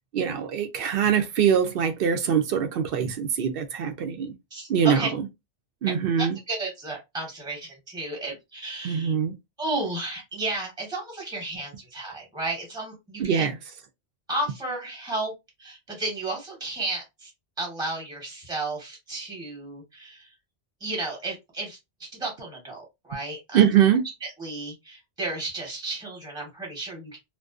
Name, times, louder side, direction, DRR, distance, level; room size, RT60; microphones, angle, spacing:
voice 1, 0.1-4.3 4.7-5.2 5.8-6.4 8.8-9.3 13.2-13.5 23.5-24.0, right 8 dB, 65° right, 0.7 m, -23 dB
voice 2, 4.5-5.1 5.9-9.1 9.6-13.5 14.3-15.3 15.6-17.3 17.6-20.3 20.8-22.8 23.0-23.6 24.2-27.2, right 2 dB, 5° right, 0.9 m, -33 dB
2.5 x 2.2 x 2.3 m
omnidirectional pair, 1.2 m